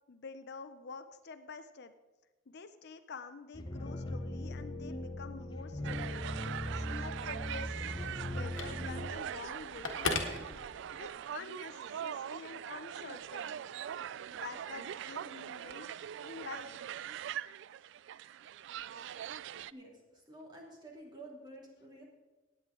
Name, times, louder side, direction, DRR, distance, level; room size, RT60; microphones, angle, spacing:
voice 1, 0.1-1.9 2.5-6.4 6.7-10.4 10.9-13.6 14.3-15.9 16.2-16.8, left 4 dB, 55° left, 11 dB, 0.6 m, -48 dB
sound 1, 3.5-9.1, left 1 dB, 25° left, 0.8 m, -39 dB
sound 2, 5.8-19.7, right 9 dB, 65° right, 0.3 m, -42 dB
Telephone, 6.5-11.2, left 4 dB, 70° left, 1.5 m, -41 dB
voice 2, 19.6-22.0, right 1 dB, 20° right, -2 dB, 2.7 m, -51 dB
17.0 x 9.2 x 3.8 m, 1.1 s
head